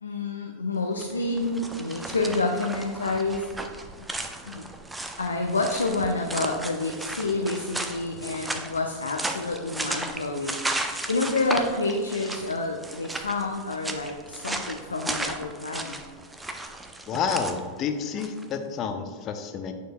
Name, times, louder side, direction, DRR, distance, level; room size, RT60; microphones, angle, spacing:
voice 1, 0.0-3.7 4.4-4.6 5.2-10.6 11.1-16.0, left 3 dB, 75° left, 2 dB, 0.5 m, -28 dB
sound 1, 0.9-18.5, right 2 dB, 10° right, 0.5 m, -35 dB
voice 2, 17.1-19.7, left 6 dB, 35° left, 7 dB, 0.7 m, -29 dB
9.1 x 6.4 x 2.2 m, 1.5 s
figure-of-eight pair, 90°, 0 cm